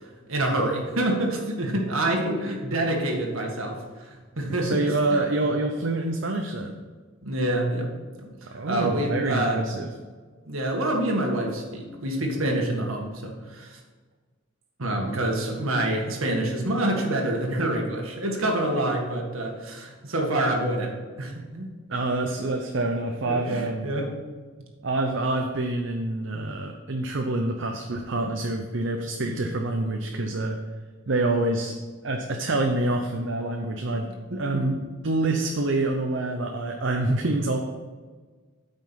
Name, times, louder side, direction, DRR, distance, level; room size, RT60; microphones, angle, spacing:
voice 1, 0.3-3.8 4.4-4.8 5.1-5.2 7.2-7.9 8.2-8.3 8.7-9.6 10.5-13.8 14.8-21.7 23.2-24.1 29.3-29.4 34.5-34.6, right 1 dB, 85° right, 1 dB, 1.7 m, -26 dB
voice 2, 4.4-6.8 8.5-9.9 21.9-23.9 24.8-30.6 31.1-31.8 32.0-34.1 34.4-37.6, right 2 dB, 60° right, 3 dB, 0.7 m, -26 dB
9.1 x 5.4 x 5.8 m, 1.4 s
head